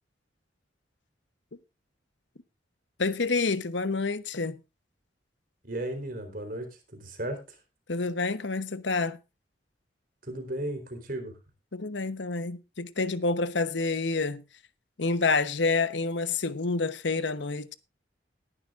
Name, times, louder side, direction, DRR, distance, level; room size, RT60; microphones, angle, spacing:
voice 1, 3.0-4.6 7.9-9.2 11.7-14.4 15.0-17.7, left 3 dB, 80° left, 1.0 m, -28 dB
voice 2, 5.6-7.6 10.2-11.3, right 1 dB, 50° right, 3.9 m, -35 dB
19.0 x 11.0 x 2.5 m
head